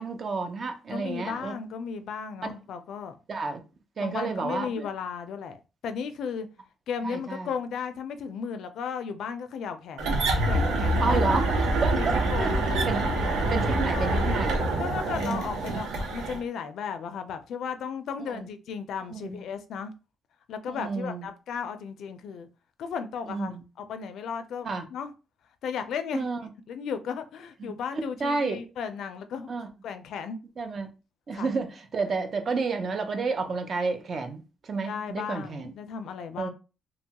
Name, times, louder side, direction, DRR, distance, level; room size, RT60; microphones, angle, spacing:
voice 1, 0.0-1.5 2.4-2.5 3.3-3.6 4.0-4.9 7.0-7.5 11.0-13.0 13.3-14.6 15.1-15.4 18.3-18.5 19.1-19.4 20.7-21.3 23.3-23.6 24.6-24.8 26.1-26.4 27.6-28.6 29.5-29.7 30.6-30.9 31.3-35.7 36.4-36.5, right 4 dB, 40° right, 0.5 m, -31 dB
voice 2, 0.9-3.2 4.0-5.6 5.8-6.5 6.9-10.2 10.5-11.2 11.9-12.6 13.9-14.3 14.8-19.9 20.5-22.5 22.8-25.1 25.6-26.3 26.7-29.5 29.8-30.4 31.3-31.5 34.8-36.5, left 6 dB, 70° left, 0.4 m, -35 dB
sound 1, 10.0-16.4, right 1 dB, 90° right, 0.7 m, -26 dB
2.8 x 2.2 x 2.8 m
cardioid pair, 135°, 0 cm